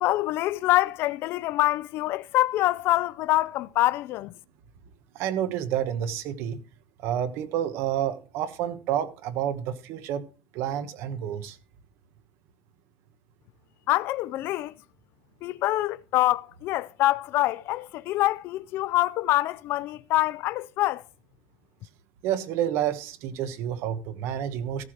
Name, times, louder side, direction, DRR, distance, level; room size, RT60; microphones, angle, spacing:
voice 1, 0.0-4.3 13.9-14.7 15.4-21.0, left 16 dB, 60° left, 0.4 m, -25 dB
voice 2, 5.1-6.6 7.0-10.2 10.5-11.6 22.2-24.8, right 10 dB, 70° right, 1.3 m, -29 dB
14.0 x 4.9 x 6.1 m
cardioid pair, 150°, 4 cm